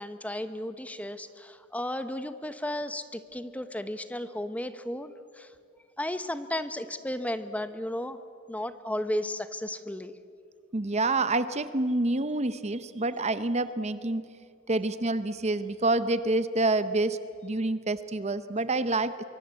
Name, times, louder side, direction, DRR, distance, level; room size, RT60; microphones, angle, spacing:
voice 1, 0.0-5.5 6.0-8.2 8.5-10.1, left 1 dB, 5° left, 11 dB, 0.9 m, -34 dB
voice 2, 10.7-14.2 14.7-19.2, right 2 dB, 30° right, 13 dB, 0.8 m, -27 dB
24.5 x 24.0 x 8.2 m, 2.5 s
head